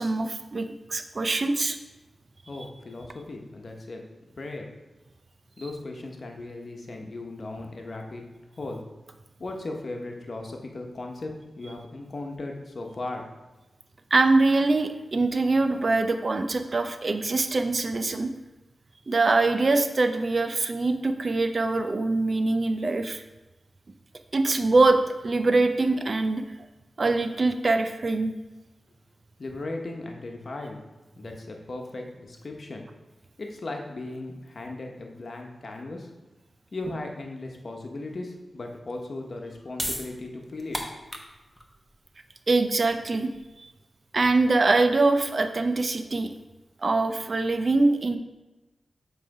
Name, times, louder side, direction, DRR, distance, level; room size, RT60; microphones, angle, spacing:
voice 1, 0.0-1.8 14.1-18.3 19.1-23.2 24.3-25.0 25.2-26.4 27.0-28.3 42.5-43.3 44.1-46.3 46.8-48.2, right 3 dB, 50° right, 7 dB, 0.6 m, -23 dB
voice 2, 2.5-4.0 4.3-4.7 5.6-8.2 8.6-8.8 9.4-13.3 29.4-30.8 31.1-32.8 33.4-36.1 36.7-40.8, left 2 dB, 55° left, 2 dB, 1.0 m, -37 dB
sound 1, 39.7-46.1, equal, 5° left, 1.0 m, -39 dB
7.6 x 3.3 x 4.8 m, 1.1 s
cardioid pair, 55°, 0 cm